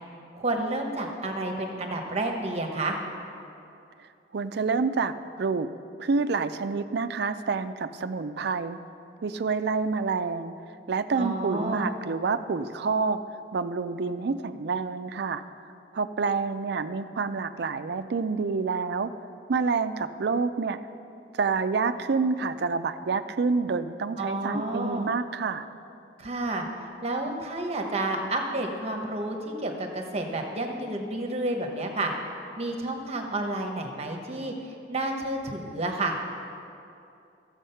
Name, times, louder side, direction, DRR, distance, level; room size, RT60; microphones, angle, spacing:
voice 1, 0.3-3.0 11.2-11.9 24.2-25.1 26.2-26.7 27.0-32.1 32.6-36.2, right 2 dB, 35° right, 3 dB, 1.0 m, -30 dB
voice 2, 4.3-5.7 6.0-8.8 9.2-10.5 10.9-13.2 13.5-15.4 15.9-19.1 19.5-20.8 21.3-25.7, right 4 dB, 65° right, 10 dB, 0.5 m, -28 dB
14.0 x 7.3 x 5.6 m, 2.6 s
head